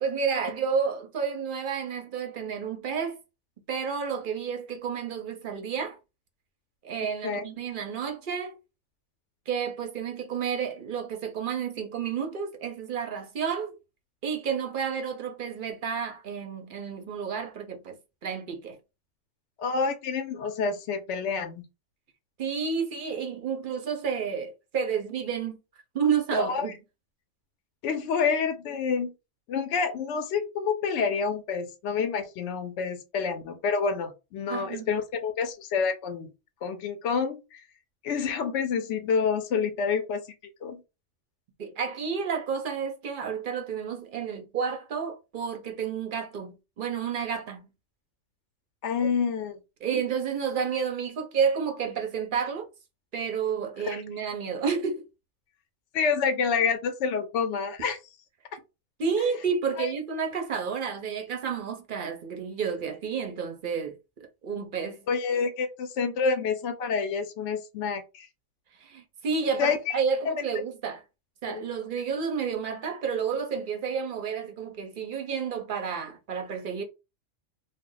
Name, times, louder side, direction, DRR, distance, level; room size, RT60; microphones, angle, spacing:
voice 1, 0.0-3.2 3.7-6.0 6.8-8.6 9.5-13.7 14.2-18.8 22.4-25.6 25.9-26.7 34.5-34.9 41.6-47.7 49.8-52.7 53.1-55.0 59.0-65.0 68.8-71.0 71.4-76.8, right 6 dB, 55° right, 0.6 m, -30 dB
voice 2, 19.6-21.6 26.3-26.7 27.8-29.1 29.5-36.3 36.6-37.6 38.0-40.2 40.6-40.8 48.8-49.6 53.8-54.0 55.9-58.0 59.8-59.9 65.1-68.3 69.6-70.0 70.2-70.3 71.5-71.7, left 5 dB, 65° left, 0.8 m, -28 dB
2.3 x 2.1 x 3.7 m
omnidirectional pair, 1.4 m